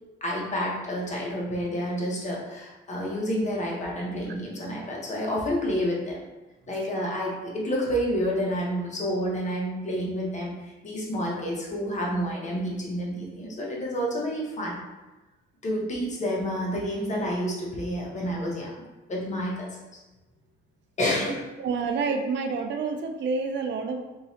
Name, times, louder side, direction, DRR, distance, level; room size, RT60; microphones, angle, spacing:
voice 1, 0.2-6.2 6.7-10.5 10.8-14.8 15.6-18.7 19.1-19.7 21.0-21.4, equal, 35° left, -3 dB, 1.2 m, -29 dB
voice 2, 21.6-24.0, right 4 dB, 65° right, 6 dB, 0.5 m, -28 dB
3.6 x 3.0 x 2.8 m, 1.1 s
cardioid pair, 90°, 20 cm